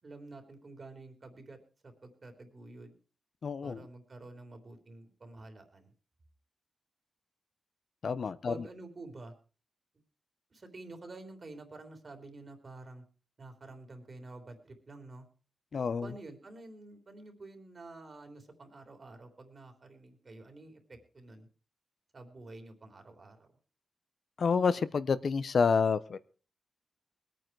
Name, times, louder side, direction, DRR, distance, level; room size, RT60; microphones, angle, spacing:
voice 1, 0.0-1.6 1.8-3.0 3.6-5.9 8.5-9.3 10.5-13.0 13.4-15.3 16.0-21.5 22.1-23.5, right 2 dB, 45° right, 6 dB, 3.4 m, -49 dB
voice 2, 3.4-3.8 8.0-8.5 15.7-16.1 24.4-26.2, left 5 dB, 65° left, 14 dB, 0.8 m, -28 dB
21.0 x 9.2 x 4.6 m, 0.36 s
wide cardioid pair, 95°, 0 cm